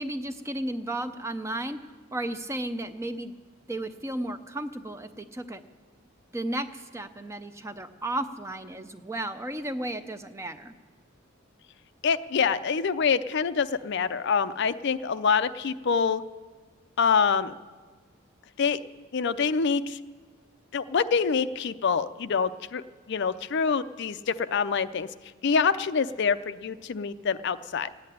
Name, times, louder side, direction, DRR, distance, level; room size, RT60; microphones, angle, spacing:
voice 1, 0.0-3.3 3.7-5.6 6.3-10.7, right 1 dB, 15° right, 10 dB, 0.6 m, -34 dB
voice 2, 12.0-16.2 17.0-17.5 18.6-18.8 19.1-20.0 20.7-25.1 25.4-27.9, left 5 dB, 55° left, 12 dB, 0.4 m, -26 dB
14.5 x 8.6 x 9.9 m, 1.5 s
head